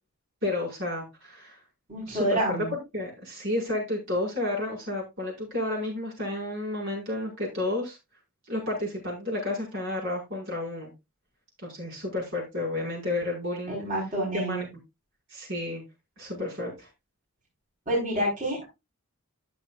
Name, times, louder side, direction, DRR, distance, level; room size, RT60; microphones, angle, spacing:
voice 1, 0.4-1.6 2.1-2.6 2.9-8.0 8.5-10.9 11.6-13.8 14.3-14.7 15.3-15.8 16.2-16.9, left 1 dB, 60° right, -2 dB, 5.2 m, -31 dB
voice 2, 1.9-2.7 13.7-14.6 17.9-18.6, right 1 dB, 35° right, -4 dB, 4.6 m, -28 dB
13.5 x 7.1 x 2.4 m, 0.23 s
head